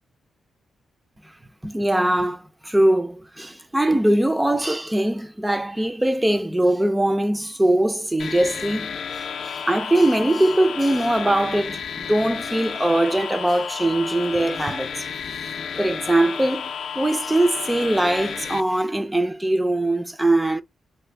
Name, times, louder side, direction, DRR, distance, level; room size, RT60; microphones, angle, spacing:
voice 1, 1.6-15.1 15.8-16.7 17.0-20.6, right 1 dB, 10° right, 0.3 m, -21 dB
sound 1, 8.2-18.6, left 7 dB, 65° left, 0.4 m, -32 dB
3.2 x 2.5 x 3.2 m
cardioid pair, 130°, 0 cm